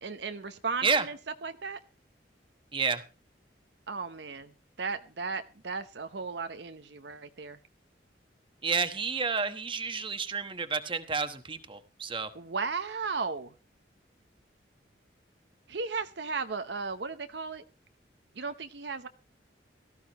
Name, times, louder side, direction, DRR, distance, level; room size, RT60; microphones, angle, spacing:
voice 1, 0.0-1.8 3.9-4.5 4.8-7.6 12.3-13.5 15.7-17.6 18.4-19.1, right 4 dB, 65° right, 0.8 m, -35 dB
voice 2, 2.7-3.0 8.6-12.3, right 5 dB, 30° right, 1.2 m, -30 dB
17.5 x 14.0 x 3.0 m
head